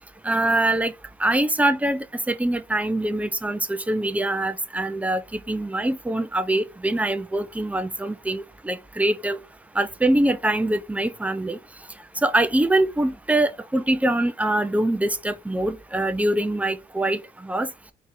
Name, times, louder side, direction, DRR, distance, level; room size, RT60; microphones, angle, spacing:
voice 1, 0.2-0.9 1.2-9.4 9.7-11.6 12.2-17.7, right 1 dB, 5° right, 0.6 m, -24 dB
3.9 x 3.0 x 3.9 m
cardioid pair, 90°, 20 cm